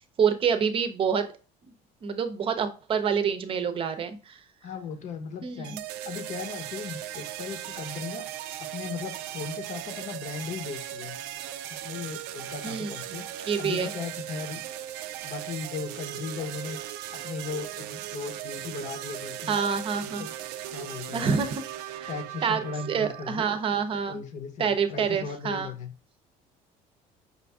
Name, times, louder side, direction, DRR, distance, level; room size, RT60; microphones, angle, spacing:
voice 1, 0.2-1.3 2.0-4.4 5.4-5.8 12.6-13.9 19.5-20.2 21.1-21.6 21.9-22.1 22.4-22.6 22.9-24.2 24.6-25.7, right 6 dB, 35° right, 9 dB, 0.6 m, -27 dB
voice 2, 4.6-8.3 8.6-11.2 11.7-14.6 15.2-16.8 17.1-19.6 20.0-20.3 20.7-21.4 22.1-23.5 24.1-25.9, left 5 dB, 55° left, 7 dB, 0.9 m, -37 dB
sound 1, 5.6-23.6, right 12 dB, 85° right, 0.4 m, -38 dB
5.5 x 2.6 x 3.4 m, 0.35 s
cardioid pair, 125°, 15 cm